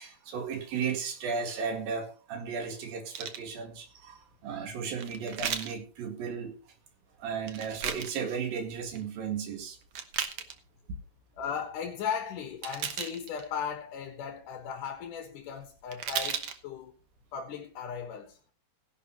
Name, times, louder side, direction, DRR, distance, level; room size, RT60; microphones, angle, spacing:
voice 1, 0.0-6.6 7.2-9.8, right 6 dB, 80° right, 3.9 m, -35 dB
sound 1, 3.1-3.4 5.0-5.7 7.4-8.1 8.7-9.0 9.8-10.6 12.6-13.5 15.6-15.7 15.9-16.6 17.2-17.3, right 8 dB, 60° right, 1.5 m, -35 dB
voice 2, 11.4-16.9 17.3-18.4, left 7 dB, 70° left, 2.8 m, -37 dB
17.0 x 11.0 x 3.0 m
omnidirectional pair, 4.0 m